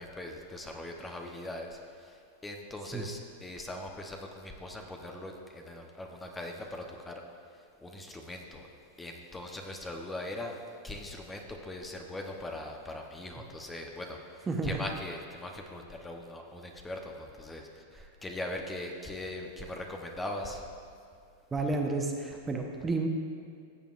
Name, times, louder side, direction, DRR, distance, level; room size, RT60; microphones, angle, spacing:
voice 1, 0.0-7.2 7.8-8.7 9.0-10.6 10.8-20.7, left 1 dB, 15° left, 2 dB, 0.9 m, -41 dB
voice 2, 14.5-14.8 21.5-23.1, right 3 dB, 20° right, 2 dB, 0.9 m, -31 dB
15.0 x 6.9 x 2.5 m, 2.4 s
hypercardioid pair, 105°, 0 cm